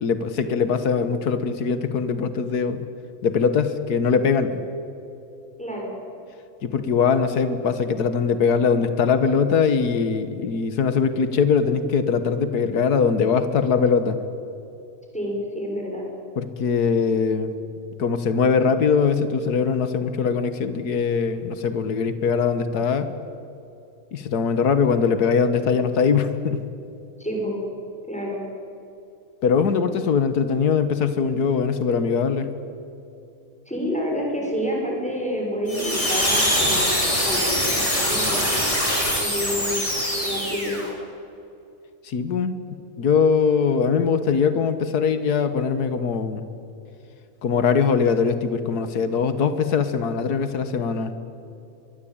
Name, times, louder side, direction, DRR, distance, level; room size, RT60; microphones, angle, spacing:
voice 1, 0.0-2.9 3.2-4.6 6.6-14.2 16.4-17.5 18.0-23.1 24.1-26.6 29.4-32.5 42.0-42.6 43.0-46.4 47.4-51.1, left 6 dB, 85° left, 10 dB, 1.8 m, -21 dB
voice 2, 5.6-6.0 15.1-16.1 27.2-27.6 28.1-28.4 33.7-36.9 37.2-38.7 39.2-39.8 40.2-40.8, equal, 5° left, -1 dB, 6.5 m, -28 dB
sound 1, 35.7-40.9, equal, 20° left, 5.9 m, -23 dB
23.5 x 22.0 x 8.8 m, 2.7 s
omnidirectional pair, 1.6 m